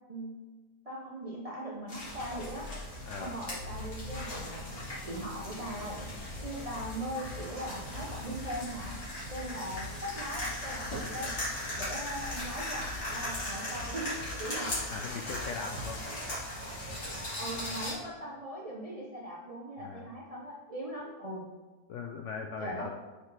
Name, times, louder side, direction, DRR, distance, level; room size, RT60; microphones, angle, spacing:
voice 1, 0.9-2.7 3.2-4.7 5.0-6.0 6.4-9.0 9.3-11.4 11.8-15.4 17.3-21.5 22.6-22.9, right 1 dB, 40° right, -3 dB, 0.5 m, -40 dB
sound 1, 1.9-17.9, left 1 dB, 45° left, 2.3 m, -39 dB
sound 2, 2.0-15.3, left 2 dB, 90° left, 1.9 m, -48 dB
voice 2, 3.0-3.4 14.9-16.0 19.8-20.1 21.9-22.9, left 5 dB, 70° left, 2 dB, 0.7 m, -39 dB
sound 3, 6.3-6.5 6.8-7.0 7.2-7.4 7.9-8.1 8.3-8.5 8.8-9.0 9.2-9.4 9.7-9.9 10.3-10.5 10.8-11.0 11.3-11.5 11.7-11.9 12.2-12.4 12.8-13.0 13.3-13.5 13.7-13.9 14.2-14.4 14.7-14.9 15.3-15.5 15.7-15.9, left 3 dB, 60° right, 2.3 m, -45 dB
7.9 x 4.3 x 3.3 m, 1.2 s
omnidirectional pair, 1.7 m